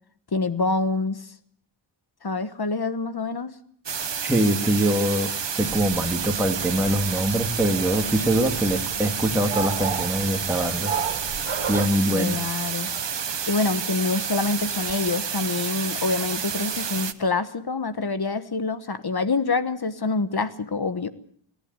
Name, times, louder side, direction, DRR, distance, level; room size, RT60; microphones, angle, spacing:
voice 1, 0.3-1.3 2.2-3.5 12.1-12.9 13.5-21.1, left 3 dB, 50° left, 12 dB, 1.3 m, -26 dB
sound 1, 3.9-17.1, right 7 dB, 60° right, 1.1 m, -30 dB
voice 2, 4.2-5.3 5.6-10.9 11.7-12.4, right 1 dB, 5° right, 3 dB, 2.6 m, -23 dB
sound 2, 5.6-11.9, right 7 dB, 80° right, 1.6 m, -33 dB
26.0 x 11.0 x 9.6 m, 0.64 s
wide cardioid pair, 70°, 50 cm